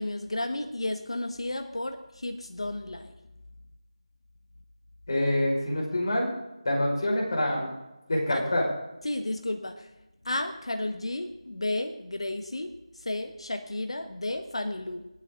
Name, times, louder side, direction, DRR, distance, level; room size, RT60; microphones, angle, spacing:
voice 1, 0.0-3.1 8.3-8.5 9.0-9.9 10.2-12.8 13.0-15.1, left 1 dB, 60° left, 6 dB, 1.3 m, -32 dB
voice 2, 5.1-6.3 6.6-7.7 8.1-8.6, left 1 dB, 40° left, -3 dB, 5.7 m, -26 dB
25.5 x 9.6 x 4.0 m, 0.97 s
figure-of-eight pair, 165°, 3 cm